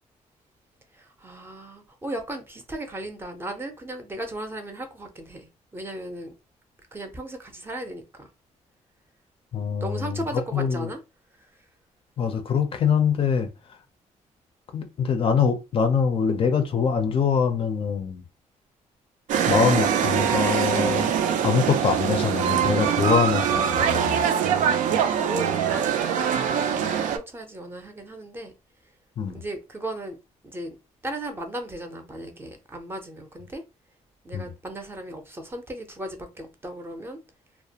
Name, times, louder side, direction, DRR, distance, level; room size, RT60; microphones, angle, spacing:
voice 1, 0.9-6.3 6.9-8.3 9.8-11.0 25.2-28.5 29.3-30.2 30.4-30.8 31.0-33.6 34.2-37.2, right 1 dB, 15° right, 0.5 m, -36 dB
voice 2, 9.5-10.2 10.5-10.9 12.2-13.5 14.7-18.2 19.5-21.1 21.4-24.2 29.2-29.4 34.3-34.5, left 6 dB, 45° left, 0.4 m, -24 dB
sound 1, 19.3-27.2, right 8 dB, 80° right, 0.4 m, -23 dB
2.3 x 2.1 x 2.7 m
cardioid pair, 125°, 13 cm